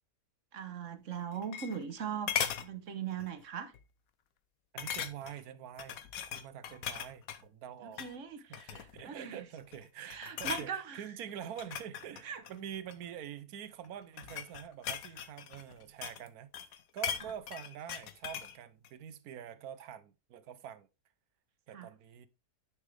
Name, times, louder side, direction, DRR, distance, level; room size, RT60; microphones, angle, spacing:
voice 1, 0.5-2.3 2.6-3.7 7.8-9.5 10.0-11.0 12.2-12.4 21.7-21.9, right 7 dB, 60° right, 1.2 m, -40 dB
sound 1, 1.1-2.0 2.3-2.7 3.2-3.4 3.7-3.8 4.8-5.4 5.8-7.4 7.9-8.1 8.5-9.1 9.6-9.8 10.1-10.7 11.4-13.0 13.8-16.3 16.5-18.6 18.8-18.9, left 9 dB, 70° left, 1.2 m, -38 dB
voice 2, 4.7-6.0 6.3-8.0 8.4-16.5 16.9-20.9 21.7-22.3, right 9 dB, 80° right, 1.3 m, -46 dB
9.9 x 6.1 x 3.3 m
omnidirectional pair, 1.6 m